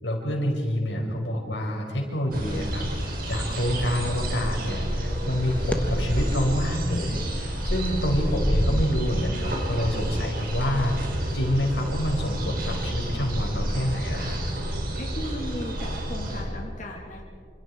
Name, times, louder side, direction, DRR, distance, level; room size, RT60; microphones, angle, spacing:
voice 1, 0.0-2.9 3.3-10.9 11.3-14.4, equal, 90° left, 1 dB, 5.6 m, -27 dB
sound 1, 2.3-16.4, equal, 55° right, 4.9 m, -30 dB
sound 2, 3.4-4.8 5.3-6.5 7.1-11.4, equal, 10° left, 1.4 m, -31 dB
voice 2, 14.7-17.2, equal, 45° left, -1 dB, 2.7 m, -37 dB
27.5 x 27.0 x 4.9 m, 2.3 s
head